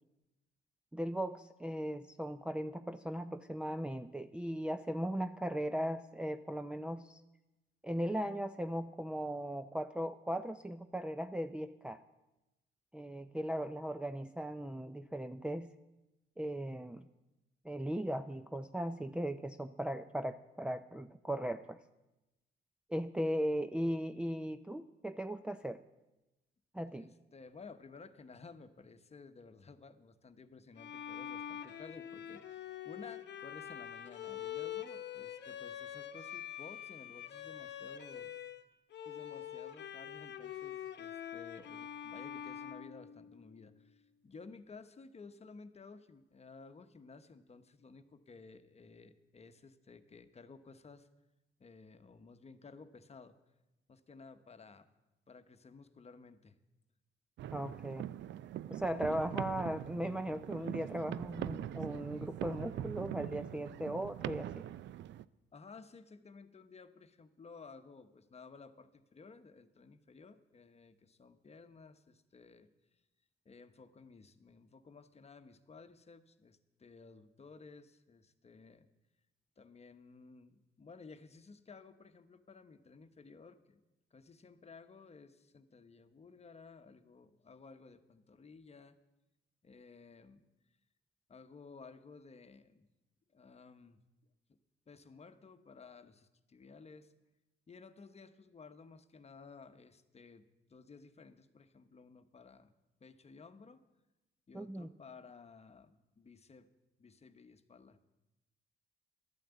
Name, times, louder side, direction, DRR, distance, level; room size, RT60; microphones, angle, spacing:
voice 1, 0.9-7.2 7.8-12.0 12.9-15.7 16.4-17.1 17.6-21.8 22.9-25.8 26.7-27.1 57.5-58.1 58.7-64.7 104.5-104.9, equal, 5° right, 7 dB, 0.4 m, -38 dB
voice 2, 26.9-38.3 39.0-51.1 51.6-53.4 53.9-54.9 55.3-56.6 59.1-59.2 65.5-72.7 73.4-78.9 79.6-83.8 84.1-89.0 89.6-90.4 91.3-92.9 93.3-94.0 94.5-94.6 94.9-97.1 97.7-102.7 103.0-103.8 104.5-106.7 107.0-108.0, left 4 dB, 30° left, 10 dB, 1.0 m, -55 dB
Bowed string instrument, 30.8-38.6 38.9-43.7, left 10 dB, 60° left, 0.9 m, -45 dB
sound 1, 57.4-65.2, right 12 dB, 70° right, 0.4 m, -42 dB
12.0 x 9.1 x 8.1 m, 1.0 s
cardioid pair, 90°, 20 cm